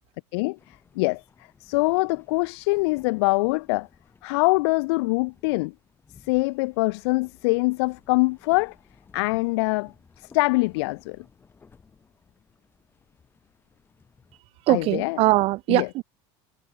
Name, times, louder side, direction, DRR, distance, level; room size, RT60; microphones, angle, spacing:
voice 1, 0.3-1.2 1.6-3.9 4.2-5.7 6.2-8.7 9.1-11.2 14.7-15.2 15.7-15.9, left 25 dB, 85° left, 0.8 m, -24 dB
sound 1, 0.6-14.4, left 5 dB, 15° left, 7.8 m, -58 dB
voice 2, 14.7-16.0, right 19 dB, 45° right, 0.8 m, -21 dB
cardioid pair, 155°, 13 cm